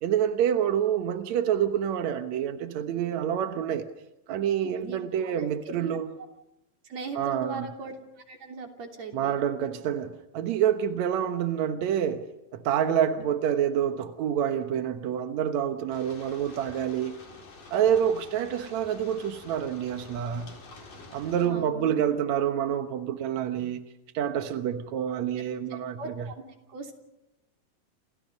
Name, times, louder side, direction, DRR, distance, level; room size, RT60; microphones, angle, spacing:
voice 1, 0.0-3.9 4.3-6.1 7.1-7.7 9.1-12.2 12.5-17.1 17.7-20.5 21.1-23.9 24.1-26.3, right 9 dB, 65° right, 1.8 m, -27 dB
voice 2, 4.6-5.5 5.8-5.9 6.9-7.9 8.3-9.3 21.4-21.9 25.7-26.3 26.7-27.0, right 3 dB, 45° right, 4.0 m, -39 dB
sound 1, 15.9-21.5, left 3 dB, 55° left, 6.0 m, -48 dB
29.0 x 29.0 x 5.4 m
omnidirectional pair, 4.7 m